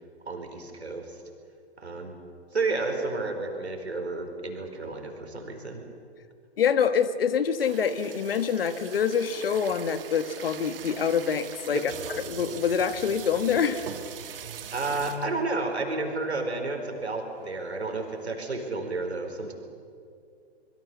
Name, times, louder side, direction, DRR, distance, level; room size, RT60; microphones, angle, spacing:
voice 1, 0.3-1.2 1.8-2.2 2.5-5.8 11.7-11.9 14.7-19.5, right 3 dB, 75° right, 4 dB, 4.7 m, -31 dB
voice 2, 6.6-11.9 12.2-13.9, left 7 dB, 60° left, 13 dB, 1.5 m, -26 dB
sound 1, 7.6-15.4 16.0-16.1 16.3-16.5 16.9-18.2, right 8 dB, 55° right, 1.8 m, -42 dB
25.5 x 22.5 x 7.0 m, 2.4 s
figure-of-eight pair, 115°, 33 cm